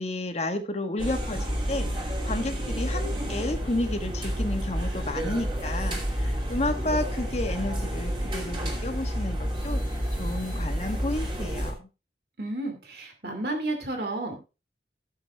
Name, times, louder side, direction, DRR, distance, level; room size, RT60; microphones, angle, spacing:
voice 1, 0.0-1.9 2.2-9.8 10.2-11.9, left 1 dB, 35° left, 5 dB, 1.5 m, -31 dB
sound 1, 1.0-11.7, equal, 30° right, 2.8 m, -30 dB
voice 2, 12.4-14.4, right 2 dB, 60° right, 5 dB, 2.6 m, -32 dB
14.5 x 7.4 x 3.6 m, 0.30 s
head